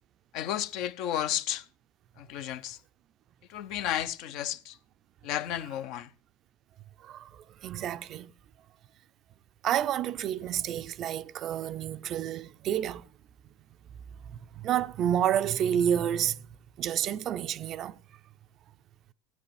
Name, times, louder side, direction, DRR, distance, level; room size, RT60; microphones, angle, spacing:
voice 1, 0.3-1.7 2.2-2.8 3.5-4.8 5.2-6.1, left 11 dB, 55° left, 0.7 m, -32 dB
voice 2, 7.0-8.3 9.6-13.1 14.3-16.4 16.8-18.0, right 10 dB, 45° right, 0.5 m, -29 dB
15.0 x 9.4 x 3.3 m
hypercardioid pair, 80°, 0 cm